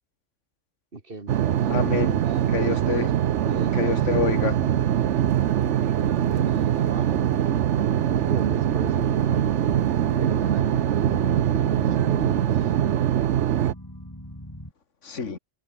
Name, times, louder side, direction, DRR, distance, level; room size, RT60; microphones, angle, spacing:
voice 1, 0.9-4.0 6.3-7.4 8.1-12.7, right 3 dB, 45° right, 2.6 m, -37 dB
sound 1, 1.3-13.7, right 10 dB, 70° right, 1.0 m, -23 dB
voice 2, 1.7-2.2 2.5-3.1 3.7-4.6 15.0-15.4, left 5 dB, 75° left, 2.3 m, -26 dB
sound 2, 4.0-14.7, equal, 15° left, 8.1 m, -38 dB
omnidirectional pair, 1.3 m